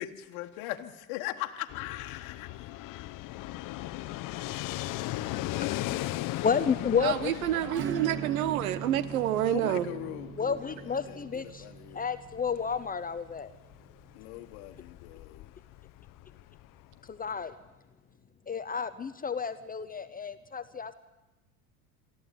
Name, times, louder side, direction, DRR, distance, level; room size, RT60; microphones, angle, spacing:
voice 1, 0.0-2.5 9.4-12.0 14.1-15.5, left 15 dB, 65° left, 1.6 m, -40 dB
Fixed-wing aircraft airplane, 1.7-17.4, left 16 dB, 50° left, 0.9 m, -38 dB
voice 2, 6.4-7.3 10.4-11.6 11.9-13.5 17.1-17.5 18.5-20.9, left 6 dB, 20° left, 0.9 m, -31 dB
voice 3, 6.9-9.9, right 12 dB, 85° right, 1.3 m, -28 dB
Acoustic guitar / Strum, 7.7-14.0, right 8 dB, 30° right, 0.8 m, -41 dB
23.5 x 14.0 x 9.3 m
supercardioid pair, 95°, 42 cm